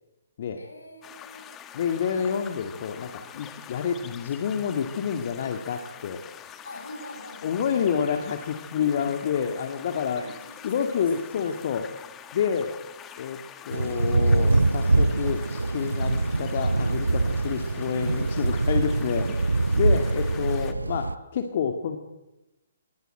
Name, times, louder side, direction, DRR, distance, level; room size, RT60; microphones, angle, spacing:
voice 1, 0.5-1.6 6.6-7.9 9.0-9.2 10.2-11.7 17.5-17.7 20.0-20.2, left 2 dB, 75° left, 5 dB, 7.6 m, -45 dB
sound 1, 1.0-20.7, left 9 dB, 20° left, 1.7 m, -45 dB
voice 2, 1.7-6.2 7.4-10.2 10.6-12.1 12.3-12.7 13.2-22.0, left 7 dB, 50° left, 5 dB, 2.2 m, -28 dB
Thunder / Rain, 13.7-21.1, right 2 dB, 80° right, 1.0 m, -24 dB
25.5 x 21.5 x 8.0 m, 1.0 s
figure-of-eight pair, 130°, 0 cm